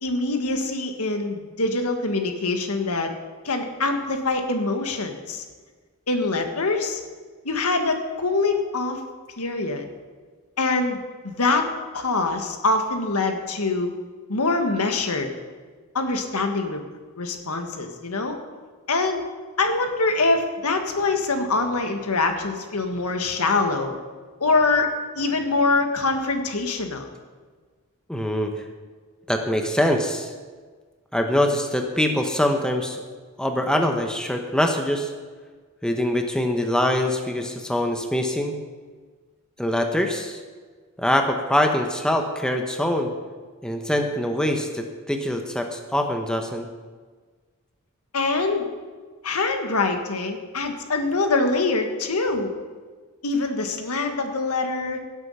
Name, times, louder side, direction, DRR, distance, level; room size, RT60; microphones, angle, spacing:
voice 1, 0.0-3.1 3.4-5.4 6.1-7.0 7.4-9.0 9.4-9.9 10.6-11.0 11.2-11.7 11.9-13.9 14.3-15.3 15.9-16.8 17.2-18.4 18.9-19.2 19.6-23.9 24.4-24.9 25.1-27.1 48.1-48.7 49.2-52.5 53.2-55.0, left 3 dB, 85° left, 5 dB, 1.6 m, -24 dB
voice 2, 28.1-28.5 29.3-30.3 31.1-33.0 33.4-35.1 35.8-38.6 39.6-40.4 41.0-43.1 43.6-46.7, left 1 dB, 5° left, 4 dB, 1.0 m, -23 dB
17.0 x 8.2 x 5.6 m, 1.5 s
head